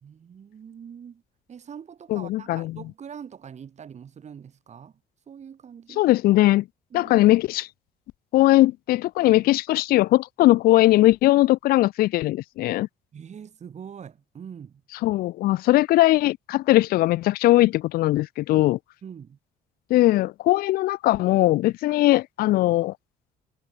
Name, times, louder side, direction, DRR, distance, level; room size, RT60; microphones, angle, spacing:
voice 1, 0.0-1.2 1.5-4.9 5.3-6.0 6.9-7.1 13.1-14.8 19.0-19.4, right 7 dB, 40° right, 4.7 m, -43 dB
voice 2, 2.1-2.7 6.0-6.6 6.9-7.7 8.3-12.9 15.0-18.8 19.9-22.9, left 17 dB, 65° left, 0.4 m, -20 dB
cardioid pair, 110°, 17 cm